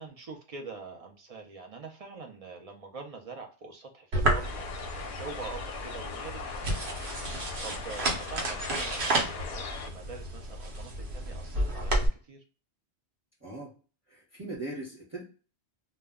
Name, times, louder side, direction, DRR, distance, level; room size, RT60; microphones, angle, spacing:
voice 1, 0.0-12.4, right 4 dB, 55° right, 3 dB, 0.4 m, -45 dB
sound 1, 4.1-12.1, right 1 dB, 70° right, 0.9 m, -32 dB
sound 2, 4.4-9.9, left 5 dB, 60° left, 0.6 m, -40 dB
voice 2, 13.4-13.7 14.1-15.2, right 2 dB, 15° right, -4 dB, 0.7 m, -39 dB
2.1 x 2.1 x 3.4 m, 0.37 s
omnidirectional pair, 1.1 m